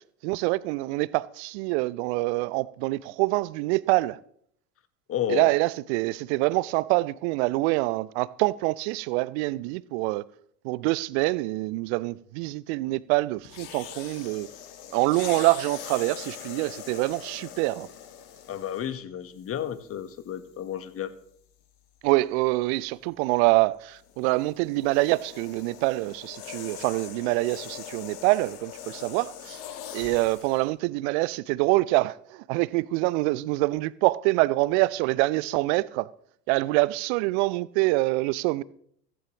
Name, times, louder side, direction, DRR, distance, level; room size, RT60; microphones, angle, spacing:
voice 1, 0.2-4.2 5.3-10.2 10.6-14.5 14.9-17.9 22.0-29.6 29.9-36.1 36.5-38.6, right 21 dB, 45° right, 0.6 m, -25 dB
voice 2, 5.1-5.5 18.5-21.1, left 10 dB, 30° left, 1.2 m, -32 dB
sound 1, 13.4-19.0 19.8-20.0 24.0-30.6, left 9 dB, 50° left, 2.0 m, -42 dB
15.5 x 15.0 x 2.9 m
figure-of-eight pair, 80°, 49 cm